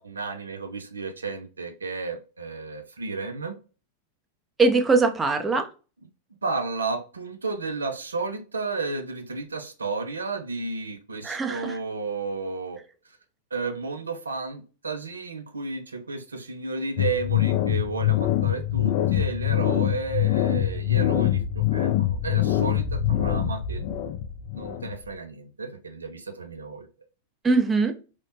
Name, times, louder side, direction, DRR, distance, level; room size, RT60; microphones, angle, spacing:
voice 1, 0.0-3.6 6.4-12.8 13.5-23.8 24.5-26.9, right 4 dB, 90° right, 0.4 m, -32 dB
voice 2, 4.6-5.7 11.2-11.8 27.4-27.9, right 3 dB, 15° right, 0.5 m, -21 dB
sound 1, 17.0-25.1, left 12 dB, 55° left, 0.3 m, -24 dB
2.8 x 2.1 x 2.7 m
hypercardioid pair, 100°, 0 cm